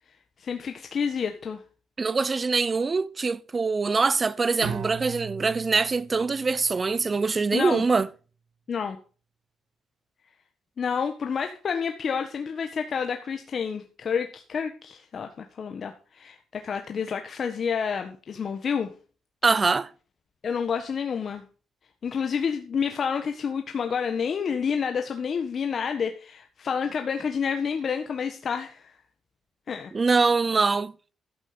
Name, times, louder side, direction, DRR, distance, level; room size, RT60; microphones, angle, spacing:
voice 1, 0.4-1.6 7.5-7.8 8.7-9.0 10.8-18.9 20.4-21.4 22.0-28.9 29.7-29.9, left 6 dB, 50° left, 1.4 m, -29 dB
voice 2, 2.0-8.1 19.4-19.9 29.9-30.9, right 4 dB, 30° right, 0.7 m, -23 dB
Bowed string instrument, 4.6-7.6, right 7 dB, 90° right, 2.7 m, -39 dB
12.5 x 8.4 x 5.1 m
cardioid pair, 90°, 0 cm